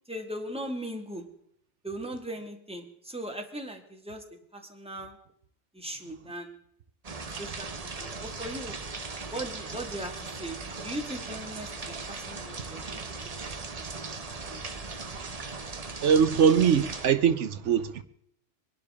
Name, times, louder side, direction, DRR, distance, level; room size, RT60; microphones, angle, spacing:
voice 1, 0.1-1.2 1.8-4.2 4.5-5.2 5.7-6.5 7.4-8.7 9.3-13.2 14.1-14.2 14.5-14.6, right 1 dB, 5° right, 1.8 m, -39 dB
sound 1, 7.0-17.1, right 4 dB, 35° right, 1.0 m, -38 dB
voice 2, 16.0-18.0, right 7 dB, 80° right, 1.1 m, -22 dB
23.0 x 11.5 x 3.6 m
omnidirectional pair, 1.2 m